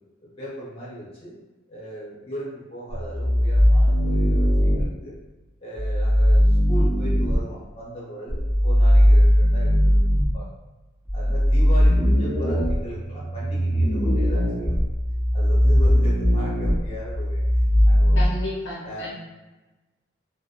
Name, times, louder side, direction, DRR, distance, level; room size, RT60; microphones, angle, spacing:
voice 1, 0.2-1.3 1.7-5.1 5.6-10.0 10.3-10.5 11.1-14.8 15.3-17.4 17.9-18.3 18.8-19.1, equal, 30° left, -7 dB, 0.9 m, -37 dB
sound 1, 2.9-4.8 5.7-7.4 8.3-10.3 11.1-18.3, equal, 5° left, 0.6 m, -19 dB
voice 2, 18.2-19.1, left 1 dB, 60° left, -6 dB, 0.5 m, -32 dB
3.0 x 2.1 x 2.5 m, 1.1 s
head